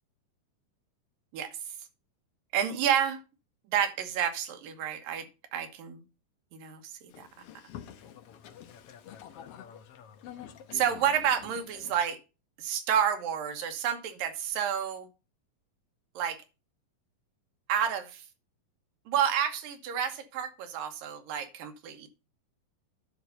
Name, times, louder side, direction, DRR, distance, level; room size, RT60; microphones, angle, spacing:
voice 1, 2.5-3.2 3.7-5.3 5.5-6.0 6.5-6.9 7.2-7.3 10.7-12.2 12.6-15.1 16.2-16.4 17.7-18.2 19.1-22.1, right 9 dB, 85° right, 7 dB, 2.9 m, -29 dB
Boat Water vehicle, 7.1-12.1, left 10 dB, 75° left, 1.4 m, -48 dB
11.0 x 4.7 x 5.3 m, 0.30 s
omnidirectional pair, 3.9 m